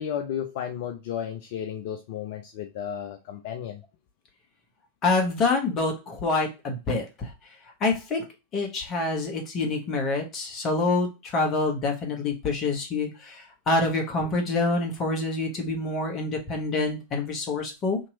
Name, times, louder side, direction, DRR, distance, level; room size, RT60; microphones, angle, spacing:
voice 1, 0.0-3.8, left 9 dB, 50° left, 3 dB, 0.4 m, -33 dB
voice 2, 5.0-7.3 7.8-8.2 8.5-18.0, left 3 dB, 30° left, 2 dB, 1.1 m, -26 dB
3.0 x 2.8 x 4.0 m, 0.27 s
figure-of-eight pair, 90°, 0 cm